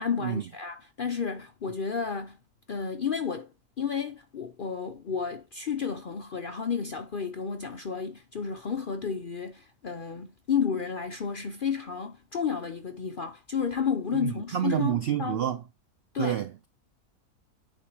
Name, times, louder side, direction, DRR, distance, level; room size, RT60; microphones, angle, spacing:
voice 1, 0.0-2.4 2.7-3.5 3.8-15.4 16.1-16.4, left 6 dB, 55° left, 0.5 m, -32 dB
voice 2, 14.2-15.6 16.2-16.7, right 10 dB, 80° right, 0.5 m, -28 dB
8.9 x 3.7 x 4.6 m
omnidirectional pair, 1.6 m